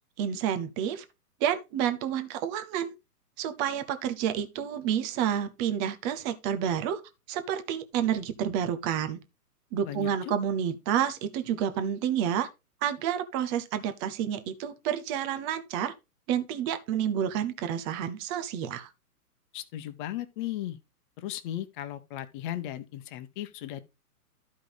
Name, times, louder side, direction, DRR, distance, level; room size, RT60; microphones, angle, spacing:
voice 1, 0.2-1.0 1.4-2.9 3.4-7.0 7.3-9.2 9.7-12.5 12.8-15.9 16.3-18.9, right 9 dB, 15° right, 0.5 m, -29 dB
voice 2, 9.8-10.3 19.5-20.8 21.2-23.8, left 13 dB, 30° left, 1.1 m, -36 dB
12.5 x 5.3 x 4.0 m
hypercardioid pair, 130°, 48 cm